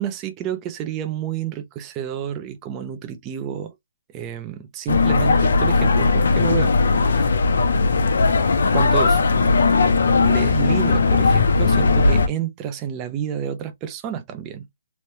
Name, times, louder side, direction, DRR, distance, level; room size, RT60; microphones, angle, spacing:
voice 1, 0.0-3.7 4.1-6.7 7.1-7.3 8.7-9.2 10.2-14.7, right 9 dB, 10° right, 0.3 m, -29 dB
sound 1, 4.9-12.3, left 4 dB, 55° left, 0.5 m, -18 dB
3.0 x 2.1 x 2.7 m
hypercardioid pair, 180°, 0 cm